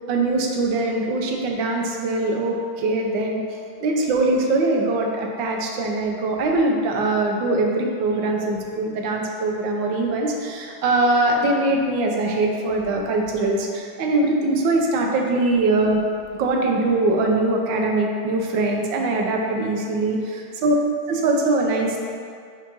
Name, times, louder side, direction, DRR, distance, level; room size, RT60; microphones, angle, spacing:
voice 1, 0.1-3.4 3.8-16.0 16.4-20.7 21.1-22.0, right 2 dB, 70° right, 1 dB, 1.5 m, -22 dB
5.7 x 4.8 x 5.3 m, 2.2 s
omnidirectional pair, 2.3 m